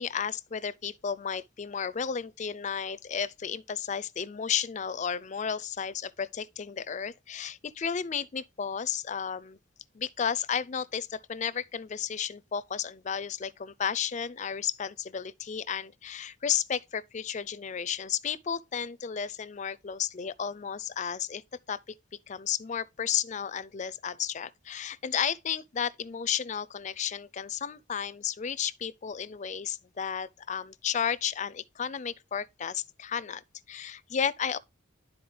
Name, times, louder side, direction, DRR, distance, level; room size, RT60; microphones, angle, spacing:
voice 1, 0.0-9.6 9.9-21.4 21.7-21.8 22.3-33.4 33.7-34.6, left 7 dB, 40° left, 0.4 m, -33 dB
11.0 x 4.1 x 3.3 m
head